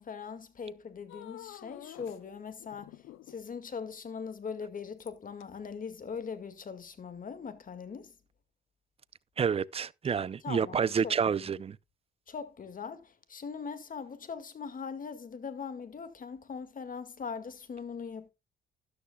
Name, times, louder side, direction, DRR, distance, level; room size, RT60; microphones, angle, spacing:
voice 1, 0.0-8.1 10.4-11.1 12.3-18.3, left 6 dB, 45° left, 1.9 m, -41 dB
sound 1, 1.1-2.2 2.6-3.5 5.0-5.4 6.2-6.3, left 13 dB, 90° left, 0.7 m, -49 dB
voice 2, 9.4-11.8, right 6 dB, 30° right, 0.5 m, -29 dB
13.0 x 12.0 x 2.3 m
cardioid pair, 90°, 20 cm